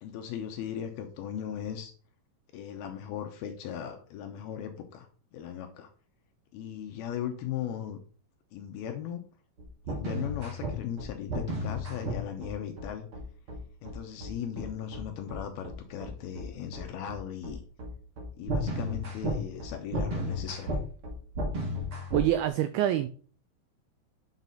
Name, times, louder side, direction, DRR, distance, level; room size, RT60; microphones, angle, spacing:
voice 1, 0.0-1.9 2.5-5.9 6.5-8.0 8.5-9.2 9.9-13.1 13.8-17.6 18.4-20.8, left 9 dB, 75° left, 5 dB, 2.5 m, -38 dB
sound 1, 9.6-22.3, equal, 40° right, 2.4 m, -34 dB
voice 2, 22.1-23.1, right 12 dB, 90° right, 11 dB, 2.2 m, -25 dB
7.2 x 6.0 x 4.0 m, 0.42 s
omnidirectional pair, 4.9 m